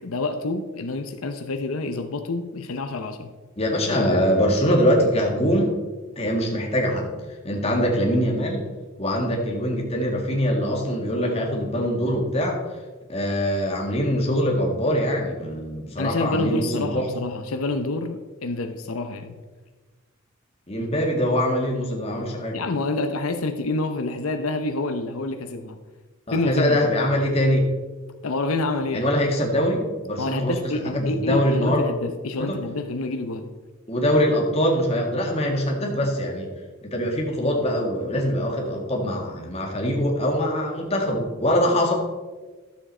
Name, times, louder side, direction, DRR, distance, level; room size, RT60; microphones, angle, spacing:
voice 1, 0.0-3.4 16.0-19.4 22.5-25.8 26.3-26.9 28.2-29.1 30.2-33.5, left 2 dB, 85° left, 7 dB, 0.7 m, -28 dB
voice 2, 3.6-5.7 6.2-7.1 7.4-8.6 9.0-12.6 13.1-17.1 20.7-22.6 26.3-27.6 28.9-31.8 32.4-32.6 33.9-36.5 36.8-41.9, equal, 30° left, 0 dB, 1.9 m, -23 dB
12.5 x 7.4 x 4.3 m, 1.3 s
head